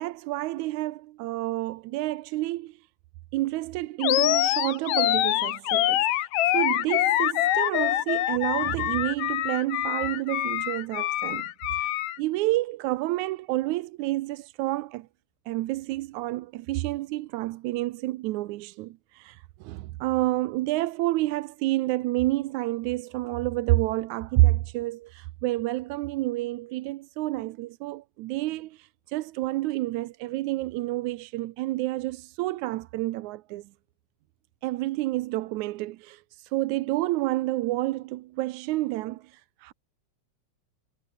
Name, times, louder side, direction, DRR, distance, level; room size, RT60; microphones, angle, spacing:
voice 1, 0.0-2.8 3.3-6.3 6.5-15.1 15.5-33.7 34.6-39.7, right 18 dB, 80° right, 2.0 m, -29 dB
Animal, 4.0-12.2, left 14 dB, 75° left, 2.2 m, -25 dB
omnidirectional pair, 3.5 m